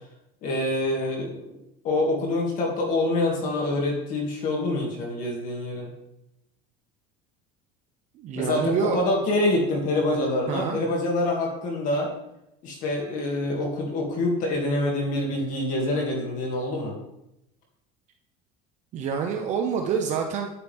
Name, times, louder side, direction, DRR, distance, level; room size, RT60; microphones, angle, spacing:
voice 1, 0.4-5.9 8.4-12.1 12.6-17.0, left 2 dB, 45° left, -1 dB, 2.4 m, -26 dB
voice 2, 8.1-9.0 10.5-10.8 18.9-20.5, right 6 dB, 40° right, 3 dB, 0.9 m, -27 dB
10.0 x 9.7 x 3.6 m, 0.85 s
cardioid pair, 160°, 19 cm